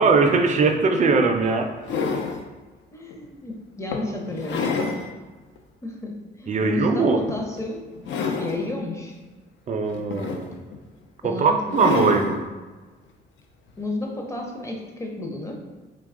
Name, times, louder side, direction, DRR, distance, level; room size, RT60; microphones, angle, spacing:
voice 1, 0.0-1.7 6.5-7.2 9.7-10.6 11.2-12.4, right 4 dB, 40° right, 5 dB, 0.4 m, -20 dB
sound 1, 0.7-0.8 1.4-2.5 3.1-3.3 3.9-5.1 5.6-5.7 7.2-7.6 8.0-8.7 9.9-10.8 11.7-12.3 13.7-13.8, left 4 dB, 70° left, 0.4 m, -28 dB
voice 2, 2.9-5.0 5.8-7.8 8.4-9.2 11.2-12.3 13.8-15.5, left 2 dB, 15° left, 0 dB, 0.6 m, -32 dB
2.8 x 2.2 x 3.6 m, 1.3 s
cardioid pair, 90°, 20 cm